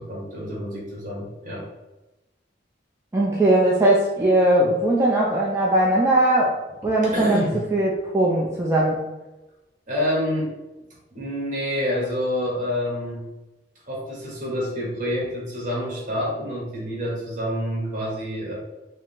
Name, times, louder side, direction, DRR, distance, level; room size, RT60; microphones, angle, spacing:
voice 1, 0.0-1.7 7.0-7.6 9.9-10.5 11.1-13.3 13.9-18.5, equal, 45° right, -4 dB, 1.5 m, -27 dB
voice 2, 3.1-6.5 6.8-9.0, right 1 dB, 15° right, -4 dB, 0.4 m, -20 dB
4.8 x 2.1 x 3.6 m, 1.0 s
head